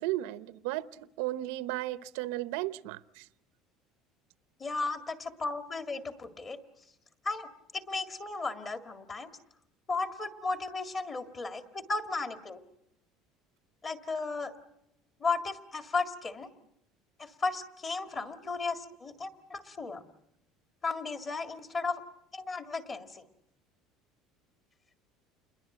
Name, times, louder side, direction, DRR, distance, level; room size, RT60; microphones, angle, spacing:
voice 1, 0.0-3.3, right 16 dB, 85° right, 15 dB, 0.9 m, -35 dB
voice 2, 4.6-6.6 7.2-7.5 7.7-9.3 9.9-12.6 13.8-14.5 15.2-16.5 17.2-20.0 20.8-22.0 22.3-23.3, left 3 dB, 20° left, 8 dB, 1.9 m, -35 dB
28.5 x 21.5 x 7.8 m, 0.79 s
cardioid pair, 160°, 0 cm